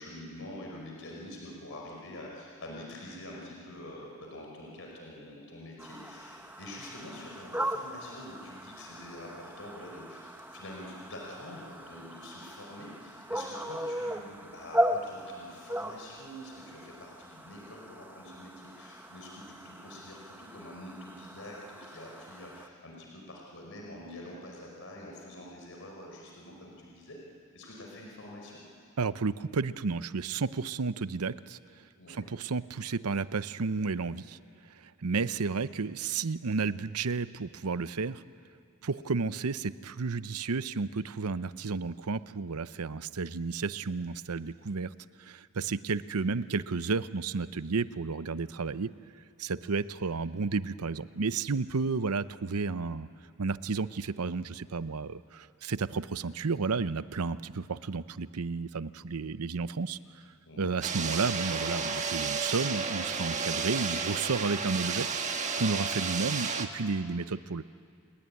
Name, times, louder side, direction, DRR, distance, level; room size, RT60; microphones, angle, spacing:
voice 1, 0.0-27.2 27.5-28.6 31.9-32.3 38.8-38.9 60.4-60.7 65.8-65.9, left 1 dB, 60° left, -1 dB, 5.1 m, -46 dB
sound 1, 5.8-22.7, right 1 dB, 10° right, 1.1 m, -38 dB
voice 2, 29.0-31.6 32.1-34.4 34.7-38.2 38.8-44.9 45.2-48.9 49.4-53.1 53.4-60.0 60.6-67.6, right 4 dB, 85° right, 14 dB, 0.7 m, -32 dB
sound 2, 60.8-66.7, right 5 dB, 35° right, 1.6 m, -32 dB
28.5 x 20.5 x 9.8 m, 2.3 s
head